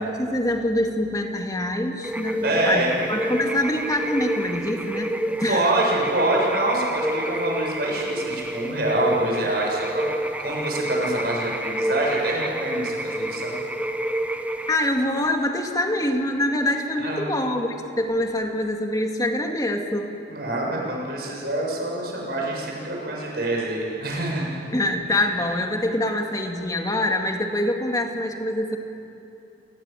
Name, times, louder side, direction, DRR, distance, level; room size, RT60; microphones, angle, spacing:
voice 1, 0.0-2.8 3.1-5.1 5.4-5.7 14.7-20.1 24.7-28.8, left 1 dB, 20° left, 3 dB, 2.2 m, -25 dB
sound 1, 2.0-14.8, right 1 dB, 10° right, 1.0 m, -28 dB
voice 2, 2.4-2.9 5.5-10.0 10.4-13.5 17.0-17.3 20.3-24.5, right 1 dB, 60° right, -2 dB, 7.6 m, -25 dB
29.0 x 19.0 x 9.2 m, 2.7 s
head